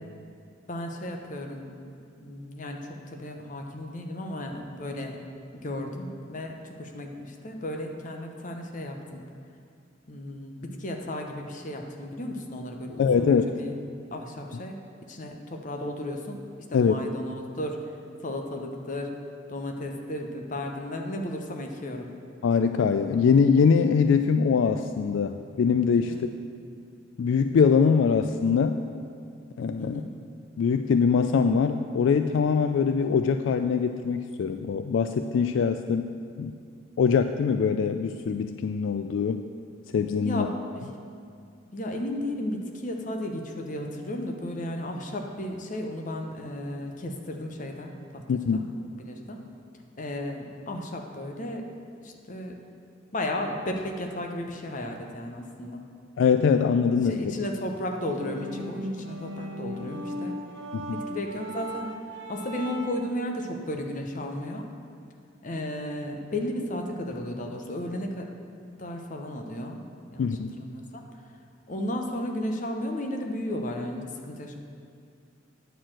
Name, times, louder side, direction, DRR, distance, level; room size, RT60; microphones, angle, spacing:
voice 1, 0.7-1.7 2.2-5.2 5.5-9.2 10.1-13.8 14.1-14.8 15.1-16.4 16.7-19.1 19.5-22.1 26.0-26.3 29.8-30.1 40.2-40.9 41.7-48.2 48.5-48.6 49.0-49.4 50.0-51.6 52.0-52.6 53.1-55.8 57.0-60.4 60.9-61.9 62.3-64.7 65.4-68.3 68.8-69.8 70.1-71.1 71.7-74.6, left 1 dB, 40° left, 3 dB, 0.8 m, -34 dB
voice 2, 13.0-13.5 16.7-16.9 22.4-26.3 27.2-28.8 29.6-30.0 30.6-36.0 36.4-36.5 37.0-39.4 39.9-40.5 48.3-48.7 56.2-57.2 60.7-61.0 70.2-70.6, left 6 dB, 70° left, 8 dB, 0.3 m, -23 dB
sound 1, 58.1-63.1, equal, 70° right, 1.1 m, -37 dB
9.3 x 4.5 x 7.5 m, 2.3 s
head